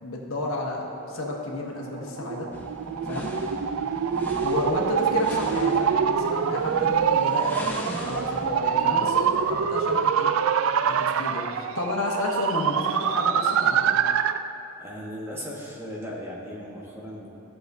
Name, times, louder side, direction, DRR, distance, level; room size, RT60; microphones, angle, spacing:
voice 1, 0.0-2.5 3.0-3.3 4.4-10.3 10.8-14.0, left 2 dB, 80° left, -1 dB, 1.2 m, -31 dB
sound 1, 1.8-14.5, right 7 dB, 75° right, 0.3 m, -25 dB
sound 2, 2.5-10.1, equal, 10° left, 0.7 m, -39 dB
voice 2, 14.8-17.3, equal, 10° right, -5 dB, 1.2 m, -37 dB
14.0 x 6.7 x 2.7 m, 2.8 s
head